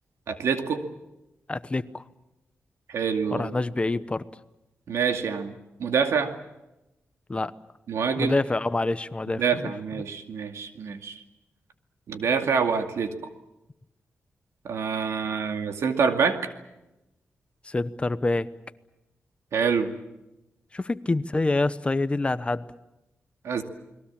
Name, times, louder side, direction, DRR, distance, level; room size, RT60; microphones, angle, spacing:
voice 1, 0.3-0.8 2.9-3.5 4.9-5.5 5.8-6.3 7.9-8.4 9.4-11.2 12.1-13.1 14.6-16.5 19.5-19.9 23.4-23.6, right 6 dB, 85° right, 6 dB, 2.3 m, -26 dB
voice 2, 1.5-2.0 3.3-4.3 7.3-7.5 8.2-9.7 17.6-18.5 20.7-22.7, left 2 dB, 25° left, 14 dB, 0.9 m, -26 dB
29.5 x 21.5 x 7.2 m, 0.95 s
cardioid pair, 90°, 5 cm